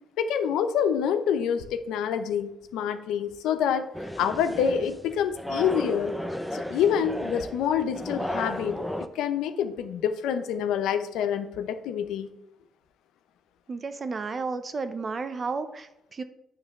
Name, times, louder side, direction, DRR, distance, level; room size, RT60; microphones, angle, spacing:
voice 1, 0.2-3.9 4.2-6.2 6.5-8.8 9.1-12.3, left 8 dB, 90° left, 9 dB, 0.7 m, -27 dB
sound 1, 3.9-9.1, left 1 dB, ahead, 0.6 m, -34 dB
voice 2, 13.7-16.2, right 4 dB, 40° right, 10 dB, 0.7 m, -32 dB
9.8 x 3.3 x 6.6 m, 0.88 s
cardioid pair, 90°, 0 cm